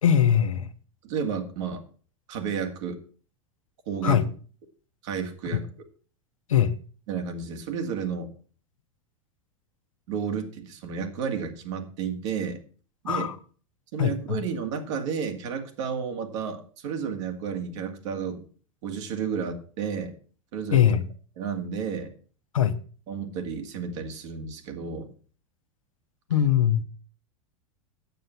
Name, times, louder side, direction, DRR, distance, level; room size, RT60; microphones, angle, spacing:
voice 1, 0.0-0.7 4.0-4.2 6.5-6.8 13.1-13.4 14.0-14.4 20.7-21.0 22.5-22.8 26.3-26.8, left 9 dB, 85° left, 1.0 m, -21 dB
voice 2, 1.0-1.8 2.3-3.0 3.9-4.2 5.0-5.7 7.1-8.3 10.1-12.6 13.0-13.3 13.9-18.4 18.8-20.1 20.5-20.8 21.4-22.1 23.1-25.1, right 6 dB, 65° right, 2.2 m, -31 dB
9.2 x 7.9 x 5.7 m
hypercardioid pair, 95°, 17 cm